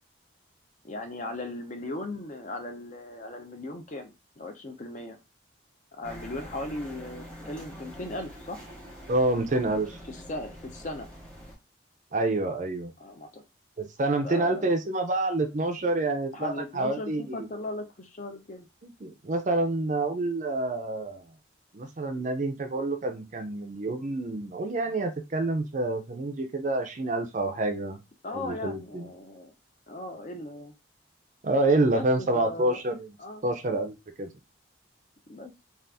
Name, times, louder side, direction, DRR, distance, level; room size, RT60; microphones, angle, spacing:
voice 1, 0.8-5.2 5.9-8.7 10.1-11.1 13.0-13.4 14.2-14.7 16.3-18.7 28.2-29.5 29.9-30.7 31.9-32.8 33.2-33.5 35.3-35.5, left 2 dB, 40° left, 6 dB, 0.5 m, -38 dB
sound 1, 6.0-11.6, equal, 5° left, 0.9 m, -45 dB
voice 2, 9.1-10.0 12.1-12.9 13.8-17.5 19.0-21.2 21.7-28.0 28.3-29.1 31.4-33.1 33.4-34.3, right 2 dB, 40° right, 6 dB, 0.4 m, -28 dB
2.6 x 2.4 x 3.4 m, 0.24 s
head